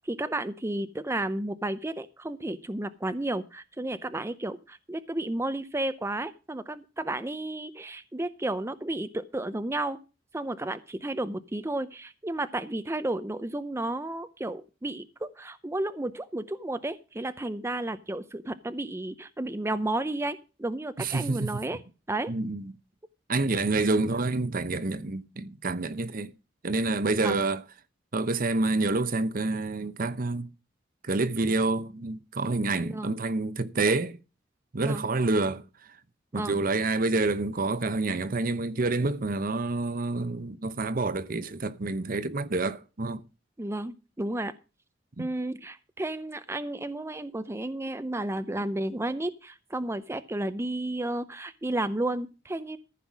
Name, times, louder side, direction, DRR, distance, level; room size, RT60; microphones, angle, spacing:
voice 1, 0.0-10.0 10.3-21.8 22.1-22.3 27.2-27.4 32.8-33.2 34.8-35.1 36.3-36.6 43.6-44.5 45.2-52.8, right 1 dB, 15° right, 0.6 m, -32 dB
voice 2, 21.0-21.6 22.3-22.7 23.3-26.3 26.6-27.6 28.1-30.5 31.0-34.2 34.7-35.6 36.3-43.2 45.2-45.3, right 3 dB, 50° right, 0.9 m, -28 dB
14.5 x 5.7 x 6.1 m
head